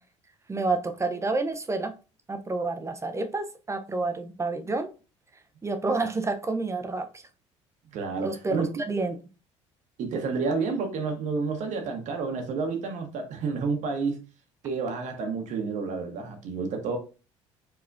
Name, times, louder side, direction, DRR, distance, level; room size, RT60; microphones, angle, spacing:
voice 1, 0.5-1.9 2.3-4.9 5.6-7.1 8.2-8.6 8.9-9.2, right 3 dB, 20° right, 0.6 m, -29 dB
voice 2, 7.9-8.7 10.0-14.2 14.6-17.0, right 4 dB, 50° right, 1.0 m, -30 dB
4.6 x 4.1 x 2.5 m
figure-of-eight pair, 60°, 16 cm